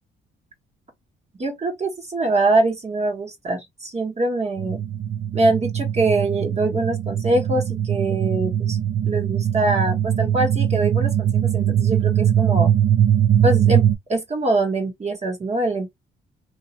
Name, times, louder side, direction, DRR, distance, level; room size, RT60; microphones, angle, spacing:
voice 1, 1.4-4.8 5.3-8.8 9.0-12.7 13.4-15.9, right 2 dB, 35° right, 1.3 m, -23 dB
sound 1, 4.6-13.9, right 10 dB, 65° right, 0.7 m, -21 dB
2.8 x 2.7 x 2.8 m
cardioid pair, 90°, 20 cm